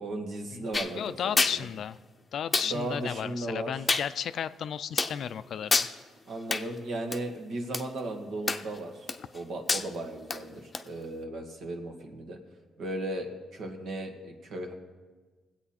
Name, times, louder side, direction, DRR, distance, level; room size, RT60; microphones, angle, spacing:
voice 1, 0.0-1.6 2.6-3.7 6.3-12.4 12.8-14.7, right 1 dB, 70° right, 3 dB, 1.7 m, -36 dB
sound 1, 0.7-0.9 1.4-1.6 2.5-2.7 3.9-4.1 5.0-5.2 5.7-5.9 6.5-6.7 7.1-7.2 7.7-7.8 8.5-8.8 9.1-9.4 9.7-9.9 10.3-10.4 10.7-10.8, left 3 dB, 30° left, 0.7 m, -26 dB
voice 2, 1.0-2.0 2.3-5.9 9.2-9.3, left 8 dB, 65° left, 14 dB, 0.4 m, -34 dB
19.0 x 8.2 x 4.3 m, 1.4 s
cardioid pair, 90°, 0 cm